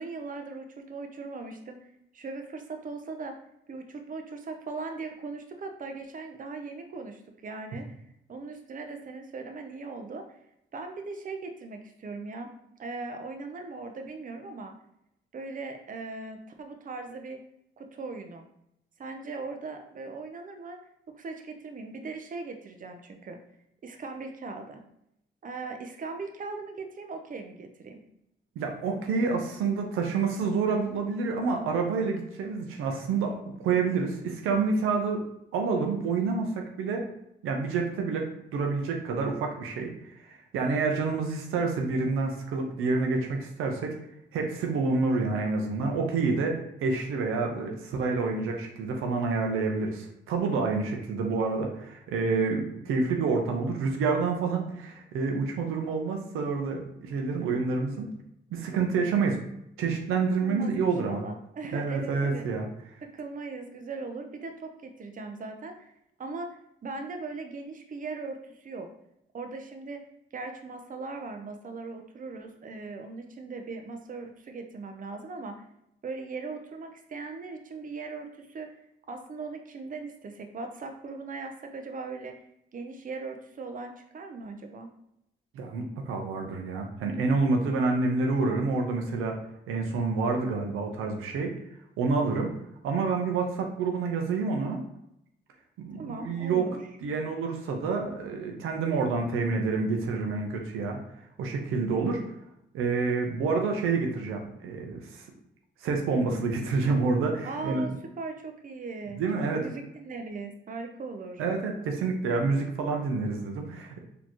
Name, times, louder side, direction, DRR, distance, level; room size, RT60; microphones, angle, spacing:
voice 1, 0.0-3.3 3.7-7.9 8.3-10.2 10.7-12.5 12.8-14.7 15.3-17.4 17.8-18.4 19.0-20.8 21.1-23.4 23.8-24.8 25.4-28.0 60.4-62.5 63.0-65.9 66.2-68.9 69.3-70.0 70.3-75.6 76.0-78.8 79.1-82.4 82.7-84.9 95.9-96.8 107.4-109.2 109.6-111.4, right 3 dB, 40° right, 5 dB, 0.6 m, -39 dB
voice 2, 28.6-35.2 35.5-37.1 37.4-38.3 38.5-39.9 40.2-43.9 44.3-58.1 58.5-59.4 59.8-61.2 61.7-62.7 85.5-89.4 89.7-91.5 92.0-92.5 92.8-94.8 95.8-96.6 97.0-101.0 101.4-102.2 102.7-105.3 105.8-107.9 109.2-109.6 111.4-114.0, right 4 dB, 85° right, 2 dB, 0.6 m, -28 dB
4.1 x 2.9 x 3.0 m, 0.78 s
supercardioid pair, 60°, 21 cm